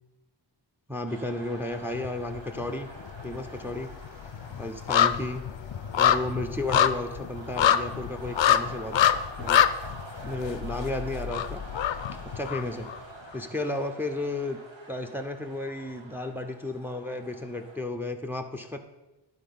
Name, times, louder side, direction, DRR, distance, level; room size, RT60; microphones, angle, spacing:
voice 1, 0.9-2.9 3.2-4.0 4.6-5.5 6.0-9.7 10.2-11.6 12.3-12.9 13.3-14.6 14.9-18.8, left 2 dB, 5° right, 6 dB, 0.6 m, -33 dB
sound 1, 1.1-17.8, right 2 dB, 75° right, 1.4 m, -47 dB
sound 2, 1.9-2.7 3.0-13.0 13.3-13.4, left 9 dB, 75° left, 0.5 m, -26 dB
11.0 x 4.2 x 5.3 m, 1.0 s
wide cardioid pair, 65°, 46 cm